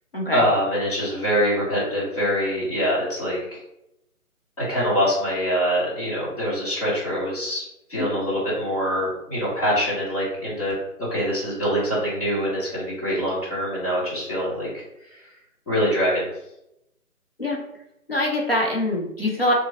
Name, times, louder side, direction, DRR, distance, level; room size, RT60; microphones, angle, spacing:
voice 1, 0.3-3.4 4.6-7.6 7.9-14.8 15.7-16.3, equal, 25° left, -14 dB, 1.3 m, -24 dB
voice 2, 18.1-19.5, left 1 dB, 40° left, -2 dB, 0.5 m, -24 dB
2.9 x 2.5 x 2.8 m, 0.83 s
hypercardioid pair, 180°, 46 cm